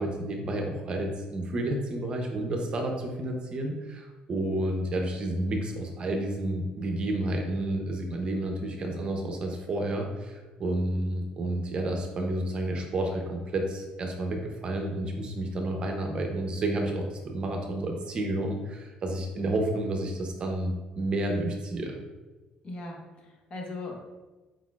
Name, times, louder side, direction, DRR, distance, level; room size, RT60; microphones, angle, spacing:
voice 1, 0.0-22.0, right 1 dB, 35° right, 2 dB, 0.6 m, -30 dB
voice 2, 22.6-24.1, left 2 dB, 40° left, 0 dB, 0.9 m, -39 dB
4.6 x 4.0 x 2.3 m, 1.2 s
cardioid pair, 125°, 3 cm